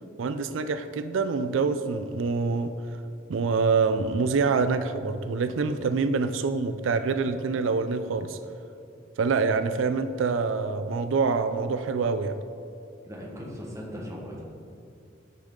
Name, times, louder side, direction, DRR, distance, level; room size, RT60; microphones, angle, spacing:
voice 1, 0.2-2.7 3.3-8.4 9.2-12.3, right 4 dB, 90° right, 10 dB, 0.4 m, -26 dB
voice 2, 13.0-14.4, equal, 15° right, -2 dB, 1.4 m, -38 dB
9.8 x 6.7 x 3.7 m, 2.6 s
head